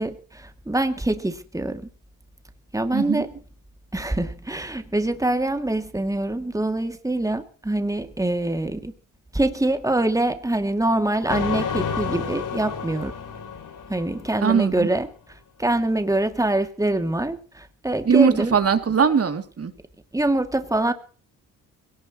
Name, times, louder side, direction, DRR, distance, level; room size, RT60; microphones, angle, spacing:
voice 1, 0.0-1.9 2.7-3.3 3.9-8.9 9.3-13.1 13.9-15.1 15.6-18.5 20.1-20.9, right 1 dB, 10° right, 7 dB, 2.6 m, -24 dB
voice 2, 2.9-3.2 14.4-14.9 18.0-19.7, right 6 dB, 45° right, 7 dB, 3.0 m, -20 dB
sound 1, 11.3-14.7, left 6 dB, 65° left, 3.4 m, -30 dB
21.5 x 18.5 x 3.2 m, 0.41 s
supercardioid pair, 65°, 34 cm